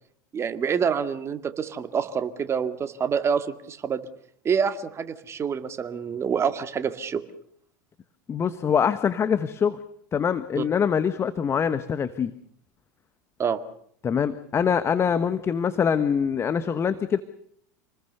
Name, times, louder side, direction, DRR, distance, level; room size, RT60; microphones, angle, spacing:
voice 1, 0.3-4.0 4.4-7.2 10.5-10.6 13.4-13.6, right 7 dB, 25° right, 9 dB, 2.1 m, -27 dB
voice 2, 8.3-9.8 10.1-12.3 14.0-17.2, left 7 dB, 25° left, 12 dB, 1.2 m, -24 dB
28.0 x 20.0 x 6.8 m, 0.65 s
hypercardioid pair, 85°, 10 cm